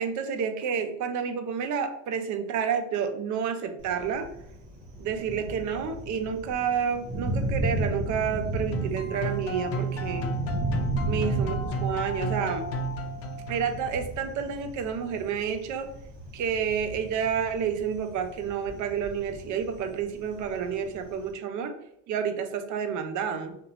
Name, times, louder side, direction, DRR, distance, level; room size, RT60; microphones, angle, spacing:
voice 1, 0.0-4.3 5.0-10.3 11.1-12.7 13.5-15.9 16.3-21.7 22.1-23.6, right 7 dB, 55° right, 7 dB, 0.5 m, -30 dB
Thunder, 3.8-21.3, right 1 dB, 70° right, 0.9 m, -35 dB
sound 1, 8.7-13.9, right 2 dB, 40° left, 0.5 m, -33 dB
2.7 x 2.2 x 2.7 m, 0.76 s
hypercardioid pair, 65°, 37 cm